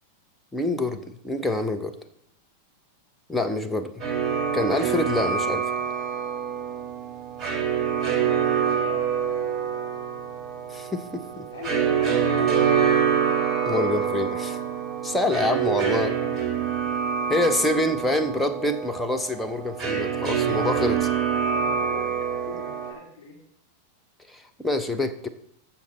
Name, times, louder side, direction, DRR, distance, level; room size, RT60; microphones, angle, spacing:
voice 1, 0.5-2.0 3.3-4.0 4.5-5.7 10.7-11.5 13.6-14.6 15.0-16.1 17.3-21.1 24.3-25.3, left 1 dB, 5° left, 5 dB, 0.9 m, -26 dB
sound 1, 4.0-22.9, right 7 dB, 20° right, 3.3 m, -26 dB
voice 2, 8.7-9.0 11.5-12.6 15.8-16.4 21.5-23.4, left 5 dB, 60° left, -4 dB, 3.6 m, -42 dB
15.0 x 5.8 x 4.2 m, 0.74 s
figure-of-eight pair, 90°, 0 cm